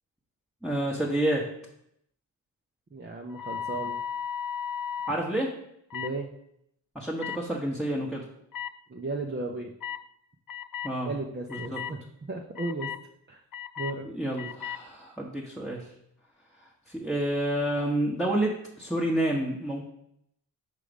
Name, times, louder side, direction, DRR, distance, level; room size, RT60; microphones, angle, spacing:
voice 1, 0.6-1.4 5.1-5.5 6.9-8.2 10.8-11.1 11.5-11.8 14.0-15.9 16.9-18.5 18.8-19.8, right 1 dB, ahead, -4 dB, 1.2 m, -29 dB
voice 2, 2.9-3.9 5.9-6.3 8.9-9.7 11.0-12.9 13.3-13.4 13.8-14.1, right 3 dB, 25° right, 1 dB, 0.8 m, -35 dB
sound 1, 3.3-5.1 5.9-6.1 7.2-7.4 8.5-8.7 9.8-10.0 10.5-10.9 11.5-11.9 12.6-13.0 13.5-13.9 14.4-14.8, left 8 dB, 50° left, 0.5 m, -35 dB
5.0 x 3.8 x 5.2 m, 0.76 s
cardioid pair, 50°, 44 cm